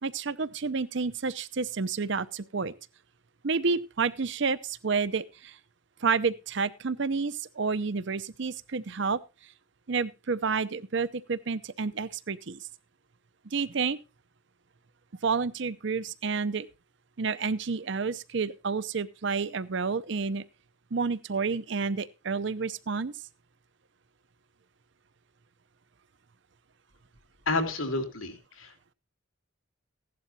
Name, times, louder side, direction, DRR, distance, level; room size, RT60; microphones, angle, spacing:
voice 1, 0.0-2.7 3.4-5.6 6.0-9.2 9.9-12.7 13.5-14.0 15.2-16.7 17.2-20.4 20.9-23.1, right 5 dB, 60° right, 0.7 m, -30 dB
voice 2, 27.5-28.9, left 2 dB, 85° left, 2.8 m, -31 dB
16.0 x 11.0 x 2.8 m
head